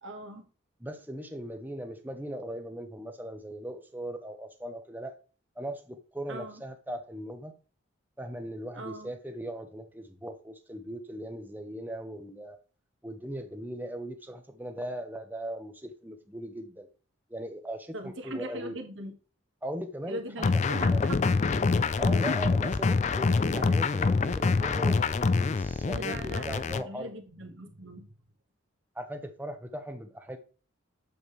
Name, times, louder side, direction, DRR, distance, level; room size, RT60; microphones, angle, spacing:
voice 1, 0.0-0.4 6.3-6.6 8.7-9.1 17.9-19.1 20.1-21.3 25.8-28.1, right 1 dB, 65° right, 4 dB, 1.6 m, -40 dB
voice 2, 0.8-5.1 5.6-7.6 8.2-12.6 13.0-16.9 17.3-18.8 19.6-20.2 20.5-21.0 22.0-27.1 29.0-30.4, right 1 dB, 10° right, 6 dB, 0.8 m, -39 dB
sound 1, 20.4-26.8, left 4 dB, 35° left, 0.3 m, -25 dB
7.9 x 6.8 x 3.2 m, 0.35 s
head